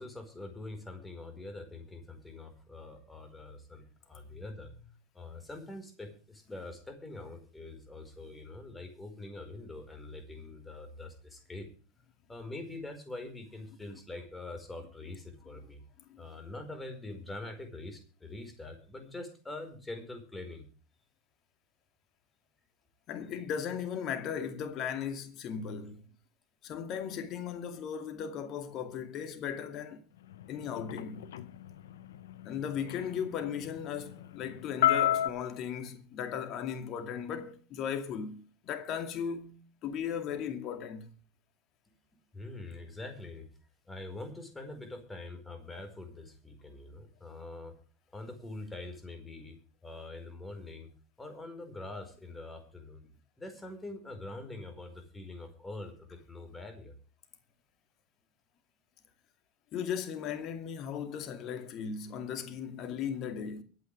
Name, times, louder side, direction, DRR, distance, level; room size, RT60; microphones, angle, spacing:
voice 1, 0.0-11.7 12.3-15.8 16.2-20.7 42.3-43.5 43.8-47.7 48.1-50.9 51.2-53.0 53.4-56.9, left 2 dB, 10° left, 4.8 m, -44 dB
voice 2, 23.1-26.0 26.6-30.0 30.5-31.3 32.4-41.1 59.7-63.6, left 7 dB, 45° left, 2.3 m, -37 dB
sound 1, 30.3-35.3, left 12 dB, 70° left, 0.9 m, -32 dB
24.0 x 9.2 x 3.4 m
figure-of-eight pair, 80°, 0 cm